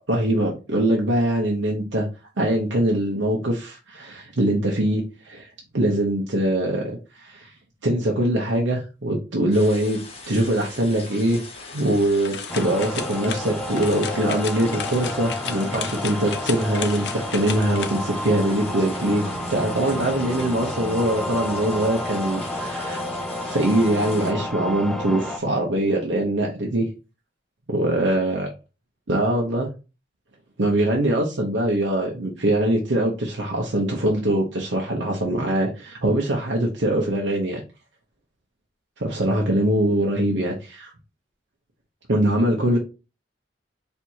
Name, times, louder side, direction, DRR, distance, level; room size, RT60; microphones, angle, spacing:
voice 1, 0.1-2.0 2.4-7.5 7.8-10.0 10.3-11.4 11.7-23.0 23.4-26.9 27.7-28.5 29.1-29.7 30.6-37.6 39.0-40.9 42.1-42.8, right 1 dB, 85° right, -1 dB, 0.9 m, -23 dB
sound 1, 9.5-24.3, left 3 dB, 35° left, 1.1 m, -41 dB
sound 2, 11.5-20.3, left 7 dB, 65° left, 0.5 m, -36 dB
sound 3, 12.5-25.4, left 1 dB, 5° left, 0.4 m, -31 dB
4.5 x 3.4 x 2.8 m, 0.31 s
head